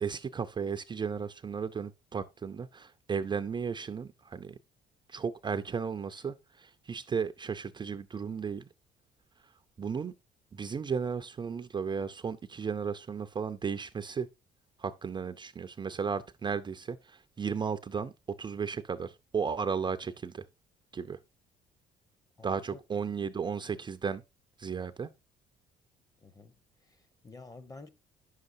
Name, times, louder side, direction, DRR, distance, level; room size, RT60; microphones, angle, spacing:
voice 1, 0.0-4.5 5.1-8.7 9.8-10.1 10.5-14.3 14.8-18.1 18.4-20.4 20.9-21.2 22.4-24.2 24.6-25.1, right 6 dB, 25° right, 0.5 m, -34 dB
voice 2, 22.4-22.8 26.2-26.5 26.8-27.9, left 3 dB, 20° left, 0.8 m, -50 dB
9.3 x 6.6 x 2.6 m
cardioid pair, 110°, 17 cm